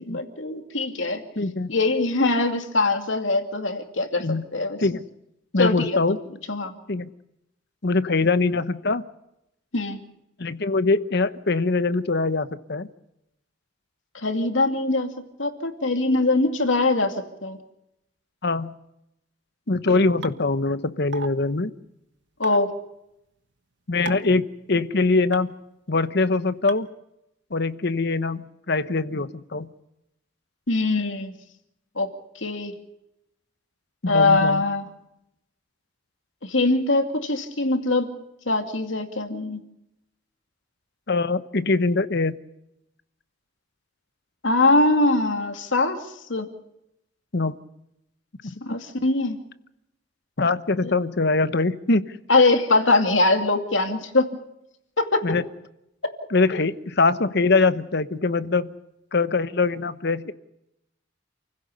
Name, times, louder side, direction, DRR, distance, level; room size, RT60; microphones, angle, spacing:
voice 1, 0.0-1.2 1.7-4.2 4.5-4.8 5.6-6.0 6.5-6.7 9.7-10.0 14.1-17.6 22.4-22.7 30.7-31.3 32.0-32.1 32.4-32.7 34.1-34.8 36.4-38.1 38.5-39.6 44.4-46.0 46.3-46.5 48.6-49.4 50.8-50.9 52.3-54.3 55.0-55.2 56.5-56.6, left 2 dB, 85° left, 6 dB, 2.5 m, -22 dB
voice 2, 1.4-1.7 4.2-4.4 4.8-5.0 5.5-6.2 6.9-7.1 7.8-9.0 10.4-12.9 18.4-18.7 19.7-21.7 23.9-25.5 25.9-26.9 27.5-29.7 34.0-34.6 41.1-42.4 47.3-47.5 48.4-48.5 50.4-52.2 55.2-55.4 56.3-58.7 59.1-60.3, left 3 dB, 60° left, 13 dB, 1.0 m, -23 dB
sound 1, 20.2-20.3 21.1-21.3 22.4-22.6 24.1-24.3 25.3-25.4 26.7-26.8, right 4 dB, 70° right, 1.4 m, -32 dB
29.0 x 16.0 x 6.8 m, 0.84 s
head